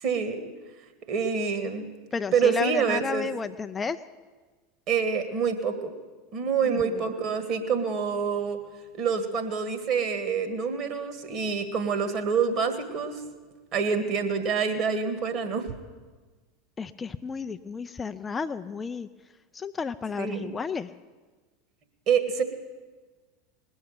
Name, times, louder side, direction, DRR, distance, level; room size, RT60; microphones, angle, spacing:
voice 1, 0.0-0.5 1.1-1.9 2.3-3.3 4.9-5.9 6.3-8.6 8.9-13.2 13.7-15.7 20.2-20.5 22.1-22.4, right 6 dB, 45° right, 7 dB, 1.8 m, -26 dB
voice 2, 2.1-4.0 6.6-7.0 16.8-19.1 19.5-20.9, left 5 dB, 20° left, 8 dB, 0.4 m, -32 dB
20.0 x 7.2 x 8.9 m, 1.4 s
figure-of-eight pair, 80°, 0 cm